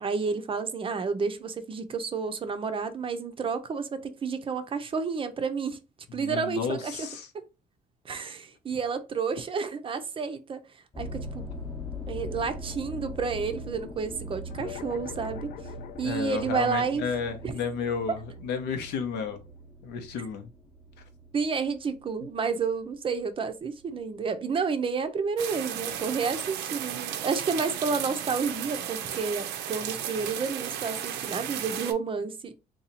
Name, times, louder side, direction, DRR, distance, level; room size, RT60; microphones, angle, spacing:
voice 1, 0.0-5.8 6.1-7.1 8.0-10.6 11.0-11.4 12.1-15.5 16.0-17.0 17.4-17.6 21.3-32.6, right 5 dB, 30° right, 0.5 m, -30 dB
voice 2, 6.1-7.3 16.0-19.4 19.8-20.5, left 6 dB, 80° left, 0.8 m, -32 dB
sound 1, 10.9-23.2 23.8-24.2 24.8-24.9 25.2-25.3, equal, 25° left, 0.8 m, -41 dB
sound 2, 14.5-19.3, left 10 dB, 60° left, 0.4 m, -45 dB
sound 3, 25.4-31.9, right 10 dB, 85° right, 0.6 m, -34 dB
2.8 x 2.3 x 4.1 m
cardioid pair, 110°, 17 cm